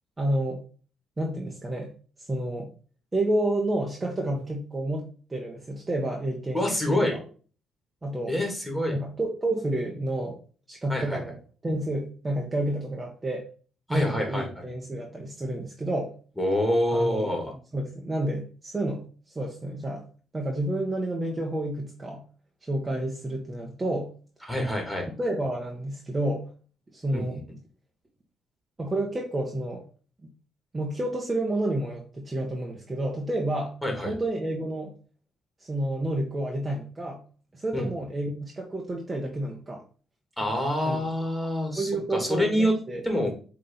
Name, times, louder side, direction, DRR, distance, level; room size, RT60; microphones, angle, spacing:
voice 1, 0.2-0.6 1.2-1.9 2.3-2.7 3.1-5.0 5.3-7.2 8.0-8.3 8.9-10.4 10.7-11.4 11.6-13.4 13.9-16.1 16.9-17.3 17.7-20.0 20.3-22.2 22.6-24.1 25.2-26.4 26.9-27.4 28.8-29.8 30.7-33.7 34.0-34.9 35.6-37.2 37.5-39.8 40.8-41.1 41.8-43.0, right 1 dB, 20° right, 0 dB, 1.5 m, -30 dB
voice 2, 6.5-7.2 8.3-9.0 10.9-11.2 13.9-14.5 16.4-17.5 24.5-25.1 27.1-27.4 33.8-34.1 37.7-37.9 40.4-42.7 43.0-43.3, left 1 dB, 5° left, 1 dB, 3.0 m, -26 dB
7.6 x 3.7 x 4.0 m, 0.39 s
cardioid pair, 90°, 0 cm